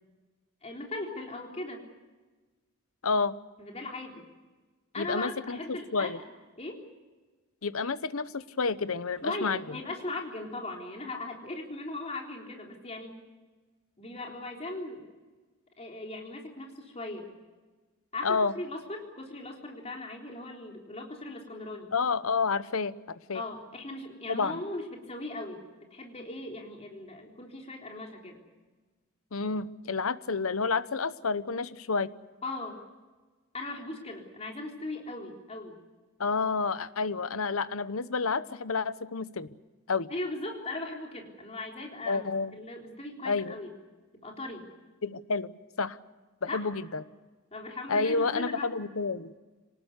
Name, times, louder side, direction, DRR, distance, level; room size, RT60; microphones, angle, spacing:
voice 1, 0.6-1.9 3.6-4.2 4.9-6.2 6.6-6.9 9.2-13.2 14.0-15.0 15.8-17.3 18.1-21.9 23.3-25.6 25.9-28.4 32.4-32.8 33.5-35.8 40.1-43.7 44.2-44.7 46.5-46.7 47.5-48.7, left 2 dB, 30° left, 1 dB, 3.8 m, -38 dB
voice 2, 3.0-3.4 5.0-6.2 7.6-9.6 18.2-18.5 21.9-23.4 24.3-24.6 29.3-32.1 36.2-39.5 39.9-40.1 42.1-42.5 43.2-43.5 45.0-46.0 46.4-47.0 47.9-49.3, left 4 dB, 80° left, 15 dB, 0.9 m, -30 dB
26.0 x 19.0 x 8.3 m, 1.3 s
head